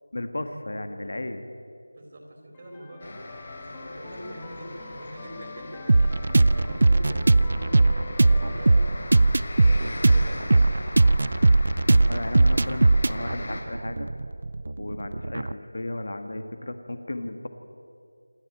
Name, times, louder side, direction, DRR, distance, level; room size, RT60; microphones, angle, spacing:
voice 1, 0.1-1.4 12.1-14.1 14.8-17.5, left 1 dB, 65° left, 8 dB, 1.8 m, -34 dB
voice 2, 1.9-3.2 3.6-7.8 8.3-9.3 9.6-10.8, equal, 35° right, 1 dB, 3.4 m, -43 dB
sound 1, 2.5-9.5, left 3 dB, 10° left, 1.1 m, -45 dB
sound 2, 3.0-13.6, left 2 dB, 45° left, 3.6 m, -40 dB
sound 3, 5.9-15.5, right 2 dB, 50° right, 0.4 m, -20 dB
27.5 x 11.0 x 9.1 m, 2.5 s
figure-of-eight pair, 170°, 0 cm